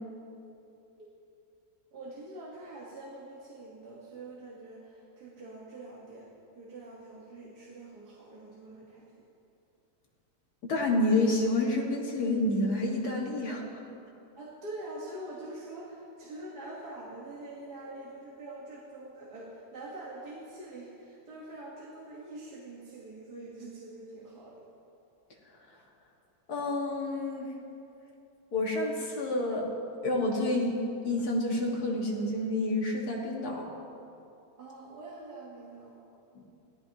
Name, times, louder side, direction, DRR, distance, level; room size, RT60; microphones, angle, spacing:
voice 1, 1.9-9.1 14.4-24.7 34.6-36.1, right 2 dB, 70° right, -6 dB, 2.0 m, -45 dB
voice 2, 10.6-13.6 26.5-27.5 28.5-29.7 30.0-30.7 31.0-33.7 36.4-36.5, left 2 dB, 65° left, -2 dB, 2.2 m, -29 dB
17.5 x 13.5 x 2.9 m, 2.7 s
omnidirectional pair, 1.8 m